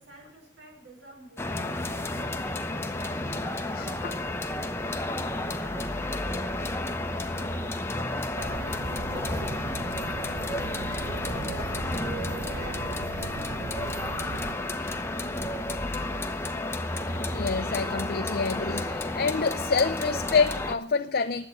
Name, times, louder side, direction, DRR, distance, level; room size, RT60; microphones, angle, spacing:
voice 1, 0.0-2.1 2.4-4.5 4.9-10.5 10.8-14.8, right 1 dB, 85° right, 5.2 m, -50 dB
sound 1, 1.4-20.8, left 2 dB, 15° left, 0.8 m, -31 dB
voice 2, 3.8-4.1 17.1-21.5, left 5 dB, 55° left, 0.5 m, -27 dB
sound 2, 8.4-14.5, right 4 dB, 55° right, 0.6 m, -38 dB
11.0 x 8.2 x 8.2 m
head